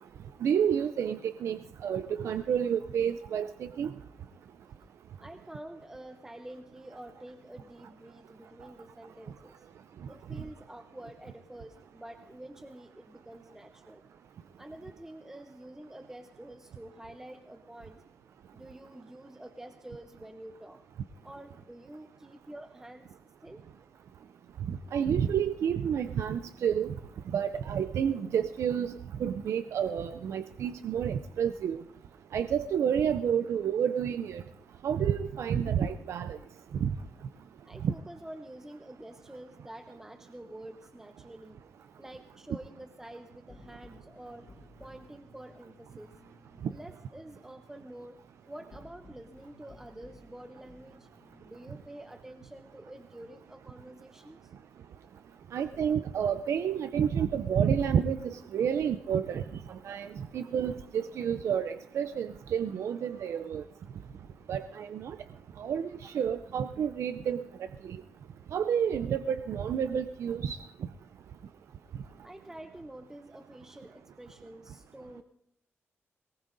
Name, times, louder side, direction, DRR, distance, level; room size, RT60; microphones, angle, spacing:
voice 1, 0.4-3.9 24.7-27.0 27.3-28.9 29.2-31.8 32.3-34.4 34.8-36.4 36.8-36.9 55.5-59.4 59.7-63.6 64.5-65.2 65.6-67.4 67.9-68.0 68.5-70.6, right 8 dB, 75° right, 11 dB, 0.4 m, -30 dB
voice 2, 5.2-9.7 10.1-14.1 14.6-18.0 18.5-20.8 21.2-23.6 37.6-41.6 42.0-44.5 44.8-46.2 46.7-48.2 48.5-51.1 51.4-54.5 72.2-75.2, right 1 dB, 10° right, 7 dB, 0.7 m, -48 dB
sound 1, 43.2-56.2 56.5-58.4 58.7-60.4 60.9-62.7, left 2 dB, 25° left, 6.1 m, -60 dB
22.0 x 19.0 x 2.6 m, 0.76 s
cardioid pair, 110°, 5 cm